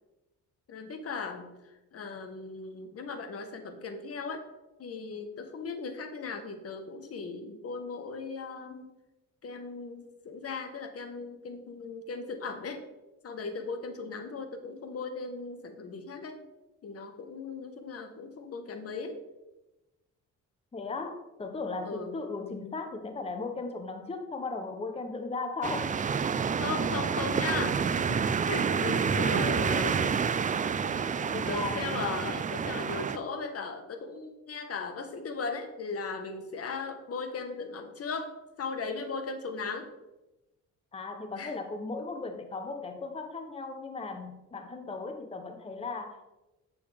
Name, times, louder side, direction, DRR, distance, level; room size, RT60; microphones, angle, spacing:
voice 1, 0.7-4.4 4.8-8.9 9.4-12.8 13.2-16.4 16.8-19.2 21.8-22.2 26.5-27.8 28.1-30.2 31.5-38.3 38.6-39.9 41.3-41.5, left 4 dB, 50° left, 7 dB, 1.2 m, -37 dB
voice 2, 20.7-26.0 26.2-26.3 31.2-32.0 40.9-46.3, left 3 dB, 20° left, 5 dB, 0.8 m, -37 dB
sound 1, 25.6-33.2, right 6 dB, 25° right, 0.4 m, -28 dB
8.5 x 6.9 x 3.4 m, 1.0 s
cardioid pair, 90°, 30 cm